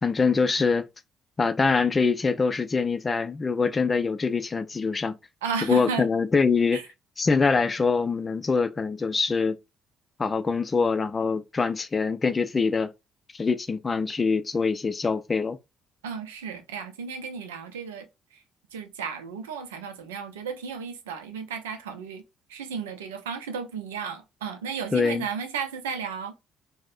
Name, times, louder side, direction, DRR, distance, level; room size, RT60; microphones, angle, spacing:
voice 1, 0.0-0.8 1.4-5.2 5.7-6.8 7.2-9.6 10.2-12.9 13.3-15.6 24.9-25.2, left 4 dB, 30° left, 0.4 m, -24 dB
voice 2, 5.4-6.1 6.7-6.8 16.0-18.4 18.7-22.2 22.5-26.3, right 5 dB, 75° right, 0.4 m, -34 dB
4.0 x 2.0 x 2.4 m
figure-of-eight pair, 45°, 0 cm